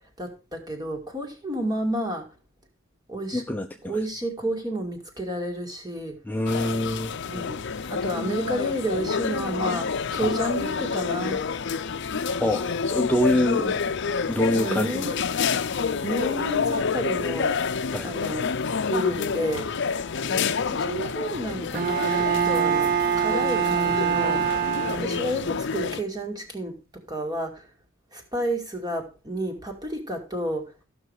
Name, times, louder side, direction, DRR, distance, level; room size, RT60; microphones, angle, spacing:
voice 1, 0.2-2.3 3.1-3.4 3.8-6.2 7.3-11.5 13.5-13.8 14.5-15.2 16.0-17.6 18.0-18.5 18.8-19.7 20.3-24.7 25.0-26.8 27.1-27.7 28.1-30.7, right 1 dB, 20° right, 2.4 m, -31 dB
voice 2, 3.3-3.9 6.3-7.1 12.3-13.6 14.3-15.1 17.9-18.1, left 1 dB, 10° left, 0.7 m, -25 dB
sound 1, 6.5-26.0, left 5 dB, 60° left, 0.6 m, -28 dB
Bowed string instrument, 21.7-25.5, right 7 dB, 45° right, 0.6 m, -24 dB
14.5 x 6.1 x 4.8 m
head